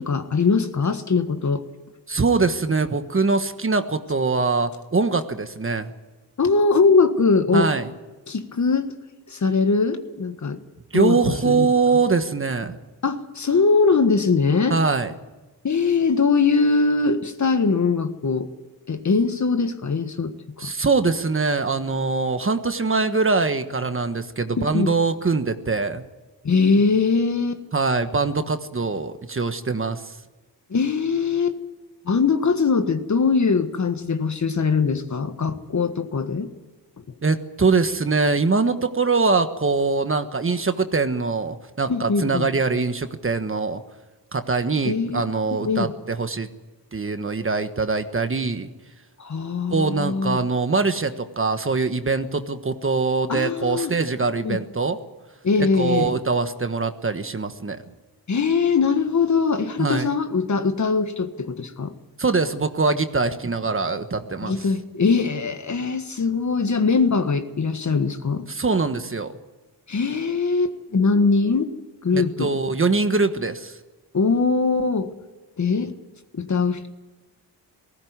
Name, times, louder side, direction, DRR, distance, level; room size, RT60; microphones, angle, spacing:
voice 1, 0.0-1.6 6.4-7.7 8.3-8.9 9.3-10.6 10.9-11.7 13.0-14.8 15.6-18.5 18.9-20.7 24.5-24.9 26.4-27.6 30.7-31.5 32.0-36.5 41.9-42.5 44.9-45.2 45.6-45.9 49.2-50.4 53.3-53.9 54.4-54.6 55.4-56.1 58.3-61.9 64.4-68.5 69.9-71.7 72.0-72.5 74.1-75.1 75.6-75.9 76.3-76.9, left 4 dB, 45° left, 9 dB, 1.5 m, -21 dB
voice 2, 2.1-5.9 7.5-7.9 10.9-12.8 14.7-15.1 20.6-26.0 27.7-30.2 37.2-43.8 44.3-46.5 46.9-48.7 49.7-55.0 55.8-57.8 59.8-60.1 62.2-64.7 68.5-69.3 72.1-73.8, right 4 dB, 30° right, 8 dB, 1.4 m, -23 dB
18.5 x 16.0 x 9.6 m, 1.2 s
cardioid pair, 95°, 41 cm